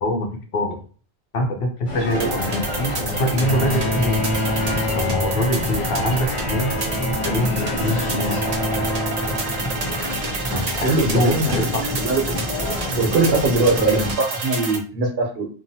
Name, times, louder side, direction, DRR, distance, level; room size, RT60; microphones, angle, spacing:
voice 1, 0.0-0.8 1.3-4.3 4.7-6.7 7.2-8.4 10.5-11.9, left 1 dB, 65° left, 4 dB, 0.8 m, -24 dB
sound 1, 1.9-14.1, left 1 dB, 40° left, 0.5 m, -29 dB
sound 2, 2.1-14.8, right 2 dB, 45° right, 0.6 m, -29 dB
Bowed string instrument, 3.4-10.2, left 1 dB, 85° left, 1.3 m, -28 dB
voice 2, 10.8-12.2 13.0-15.5, right 3 dB, 70° right, 0 dB, 1.0 m, -21 dB
2.7 x 2.3 x 2.7 m, 0.40 s
omnidirectional pair, 1.1 m